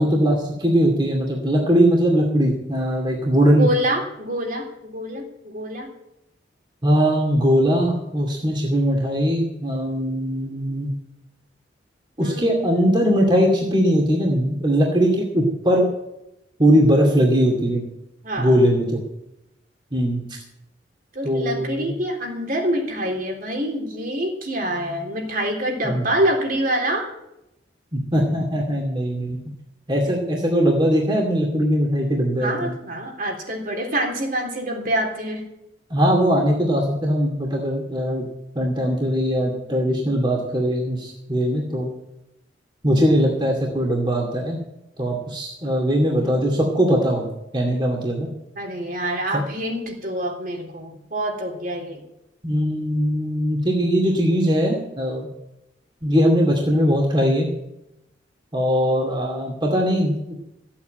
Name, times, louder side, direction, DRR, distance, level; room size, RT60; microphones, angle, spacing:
voice 1, 0.0-3.7 6.8-10.9 12.2-15.9 16.6-17.8 18.4-19.0 19.9-20.2 21.2-21.9 25.8-26.0 27.9-29.4 29.9-32.7 35.9-38.3 38.5-41.9 42.8-44.6 45.0-47.2 47.5-48.3 49.3-49.4 52.4-55.3 56.0-57.5 58.5-60.4, equal, 25° right, 0 dB, 2.6 m, -20 dB
voice 2, 3.6-5.9 12.2-13.2 18.2-18.7 21.1-27.1 32.4-35.4 48.6-52.0, right 1 dB, 50° right, 1 dB, 3.6 m, -26 dB
15.0 x 8.7 x 8.9 m, 0.86 s
head